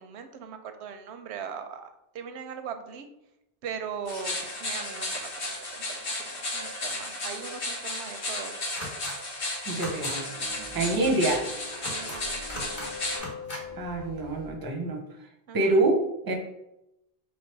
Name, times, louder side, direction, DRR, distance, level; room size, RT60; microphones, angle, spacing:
voice 1, 0.0-3.1 3.6-8.5 10.4-10.9 11.9-13.3 15.5-15.8, right 6 dB, 90° right, 7 dB, 0.9 m, -40 dB
sound 1, 4.1-13.2, left 2 dB, 80° left, 1.5 m, -34 dB
sound 2, 8.8-9.1 9.7-10.1 11.7-12.2 12.5-12.9 13.1-13.6, left 1 dB, 55° left, 1.5 m, -38 dB
voice 2, 9.7-10.3 10.7-11.4 13.8-15.0 15.5-16.3, right 2 dB, 25° right, 3 dB, 0.6 m, -26 dB
sound 3, 9.9-14.6, left 3 dB, 25° left, 0.7 m, -43 dB
3.4 x 3.2 x 4.4 m, 0.87 s
omnidirectional pair, 1.1 m